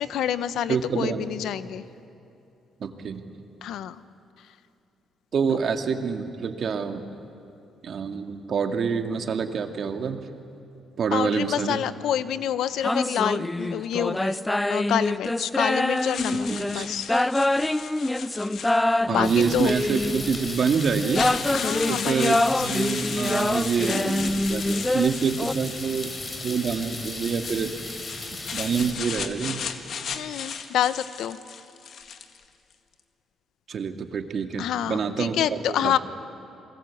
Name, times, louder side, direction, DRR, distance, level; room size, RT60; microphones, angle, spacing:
voice 1, 0.0-1.8 3.6-4.0 5.5-5.6 11.1-14.4 14.7-17.3 19.1-19.7 21.5-22.8 30.1-31.4 34.6-36.0, left 10 dB, 80° left, 14 dB, 0.8 m, -28 dB
voice 2, 0.7-1.3 2.8-3.2 5.3-7.1 7.8-10.2 11.0-11.8 16.5-16.9 19.1-21.3 21.9-26.1 26.4-27.8 28.3-29.6 33.7-35.9, right 6 dB, 55° right, 6 dB, 2.0 m, -27 dB
sound 1, 12.8-20.4 21.0-25.5, left 1 dB, 10° left, 0.6 m, -25 dB
sound 2, 16.0-19.2 20.0-20.1 20.5-26.3 27.3-32.4, left 7 dB, 65° left, 1.7 m, -36 dB
sound 3, 19.2-28.9, left 3 dB, 35° left, 3.9 m, -36 dB
28.0 x 21.0 x 8.4 m, 2.6 s
cardioid pair, 90°, 0 cm